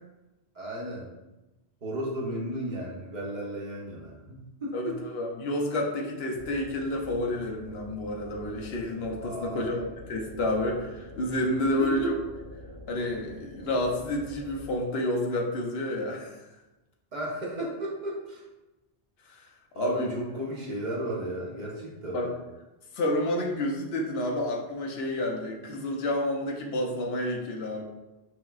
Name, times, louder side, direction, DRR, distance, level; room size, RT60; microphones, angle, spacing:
voice 1, 0.5-1.1 1.8-4.9 9.2-9.8 11.6-12.1 17.1-18.4 19.7-22.3, right 1 dB, 50° right, -4 dB, 0.8 m, -34 dB
voice 2, 4.7-12.2 12.9-16.4 19.3-19.5 19.8-20.2 22.1-22.3 22.9-27.8, left 1 dB, 75° left, 0 dB, 0.9 m, -30 dB
sound 1, 6.3-14.8, left 1 dB, 15° left, 0.7 m, -46 dB
5.9 x 2.2 x 2.3 m, 1.0 s
omnidirectional pair, 1.1 m